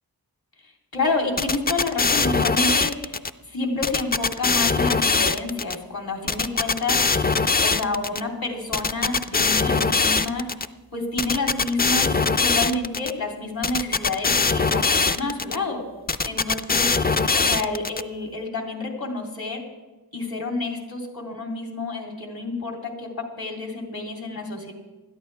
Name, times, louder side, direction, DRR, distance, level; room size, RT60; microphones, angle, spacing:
voice 1, 0.9-7.3 7.6-10.5 10.9-15.8 16.2-16.9 17.3-19.6 20.1-24.7, left 3 dB, 65° left, 1 dB, 3.3 m, -29 dB
sound 1, 1.4-3.3 3.8-5.7 6.3-8.2 8.7-10.7 11.2-13.1 13.6-15.6 16.1-18.0, left 4 dB, 25° left, 0.4 m, -21 dB
20.5 x 13.0 x 3.4 m, 1.2 s
wide cardioid pair, 75°, 39 cm